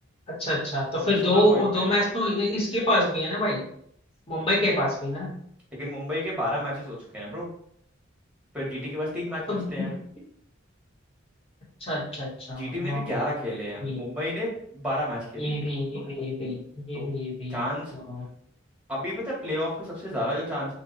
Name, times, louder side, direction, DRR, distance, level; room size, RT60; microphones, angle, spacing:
voice 1, 0.3-3.6 4.3-5.3 9.5-9.9 11.8-13.0 13.8-14.0 15.4-17.6 18.1-18.2, left 1 dB, 30° left, -6 dB, 1.4 m, -26 dB
voice 2, 1.1-1.9 5.7-7.5 8.5-9.9 12.5-15.7 16.9-17.0 17.5-17.9 18.9-20.7, equal, 5° right, -4 dB, 1.3 m, -31 dB
2.8 x 2.6 x 4.0 m, 0.66 s
head